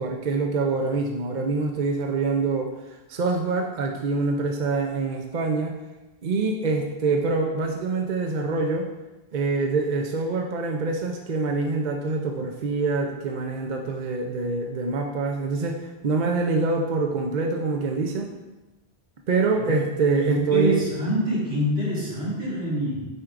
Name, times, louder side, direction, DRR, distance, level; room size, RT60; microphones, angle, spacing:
voice 1, 0.0-2.7 3.1-5.8 6.2-8.9 9.3-18.3 19.3-20.8, right 3 dB, 50° right, 2 dB, 0.7 m, -25 dB
voice 2, 20.2-23.1, equal, 80° right, -8 dB, 2.6 m, -26 dB
9.5 x 4.4 x 2.5 m, 1.1 s
omnidirectional pair, 1.1 m